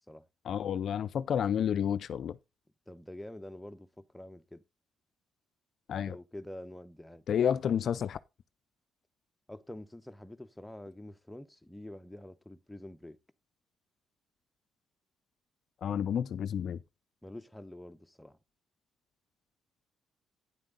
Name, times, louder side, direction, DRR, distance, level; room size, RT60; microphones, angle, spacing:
voice 1, 0.4-2.4 5.9-6.2 7.3-8.2 15.8-16.8, left 8 dB, 60° left, 0.4 m, -30 dB
voice 2, 2.9-4.6 6.0-7.2 9.5-13.2 17.2-18.4, left 1 dB, 5° left, 0.9 m, -47 dB
9.9 x 7.6 x 3.9 m
cardioid pair, 90°, 0 cm